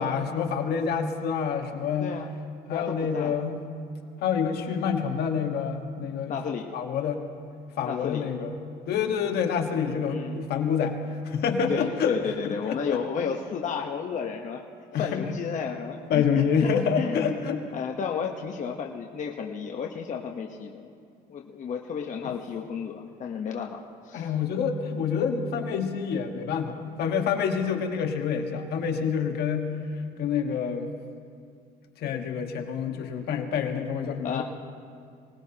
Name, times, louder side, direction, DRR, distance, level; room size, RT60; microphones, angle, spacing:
voice 1, 0.0-2.1 2.7-3.6 4.2-6.4 6.7-7.2 7.7-8.5 8.9-12.2 12.4-13.0 14.9-15.2 16.1-17.6 24.1-29.7 30.2-30.9 32.0-34.4, left 6 dB, 70° left, 3 dB, 1.5 m, -27 dB
voice 2, 1.9-2.3 2.7-3.3 6.3-6.7 7.8-8.3 10.1-10.4 11.7-14.6 14.9-16.7 17.0-17.5 17.7-20.9 21.3-24.3 34.2-34.4, left 6 dB, 45° left, 1 dB, 1.1 m, -32 dB
24.5 x 19.0 x 2.9 m, 2.2 s
cardioid pair, 110°, 17 cm